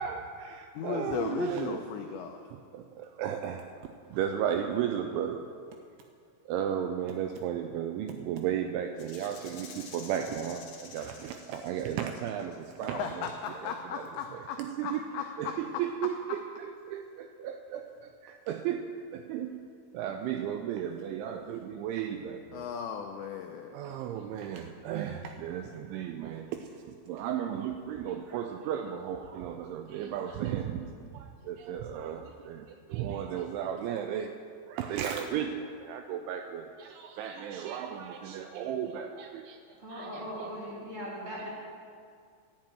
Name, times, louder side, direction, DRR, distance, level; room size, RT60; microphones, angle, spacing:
voice 1, 0.0-1.8 2.5-3.7 4.1-5.4 6.5-14.0 14.3-15.1 15.4-19.5 19.9-22.7 23.7-34.3 34.7-39.6 39.9-40.5 41.3-41.5, right 9 dB, 85° right, 5 dB, 2.7 m, -35 dB
voice 2, 0.8-2.4 12.8-14.6 14.8-15.2 22.5-23.7, left 8 dB, 90° left, 4 dB, 2.5 m, -36 dB
Rattle (instrument), 9.0-12.8, left 5 dB, 60° left, 2.6 m, -50 dB
voice 3, 39.8-41.5, equal, 40° right, -6 dB, 2.3 m, -39 dB
12.0 x 7.6 x 9.0 m, 2.2 s
omnidirectional pair, 5.9 m